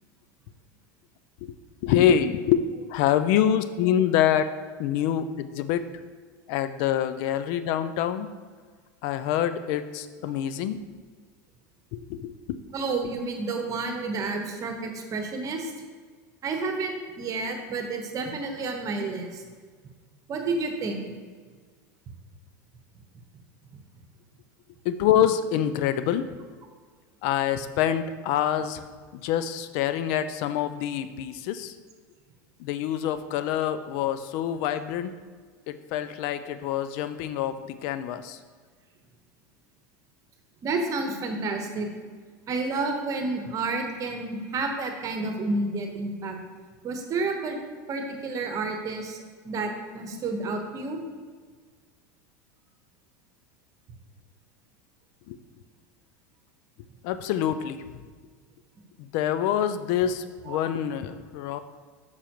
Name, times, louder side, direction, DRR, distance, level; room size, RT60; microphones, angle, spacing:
voice 1, 1.8-2.6 2.9-4.5 4.8-5.8 6.5-8.3 9.0-10.8 11.9-12.4 24.8-26.3 27.2-28.8 29.1-31.7 32.6-35.1 35.7-38.4 55.3-55.4 57.0-58.0 59.0-61.6, left 10 dB, 60° left, 12 dB, 0.4 m, -26 dB
voice 2, 12.7-15.7 16.4-19.4 20.3-21.0 40.6-41.9 42.5-46.4 46.8-47.6 47.9-49.2 49.4-51.0 60.5-60.6, right 3 dB, 35° right, 4 dB, 1.1 m, -30 dB
6.9 x 5.6 x 3.0 m, 1.5 s
supercardioid pair, 105°, 10 cm